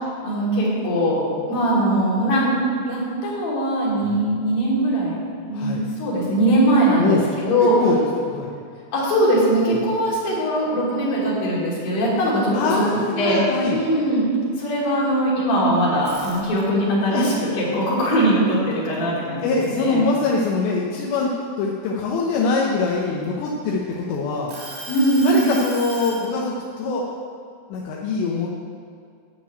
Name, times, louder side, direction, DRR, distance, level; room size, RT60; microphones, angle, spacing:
voice 1, 0.2-2.5 2.9-5.2 5.5-7.8 8.9-13.4 13.7-14.3 14.6-20.0 24.9-25.3, right 1 dB, 45° left, -7 dB, 4.6 m, -21 dB
voice 2, 7.0-8.5 12.5-13.8 17.1-17.3 19.4-21.3 21.6-24.5 25.2-27.1 27.7-28.5, left 4 dB, 75° left, -3 dB, 2.8 m, -23 dB
sound 1, 15.9-16.9 17.4-19.2 19.6-19.9 20.3-22.1 22.8-23.9 24.5-26.3, right 2 dB, 85° right, 5.2 m, -37 dB
12.5 x 5.4 x 8.7 m, 2.2 s
omnidirectional pair, 5.9 m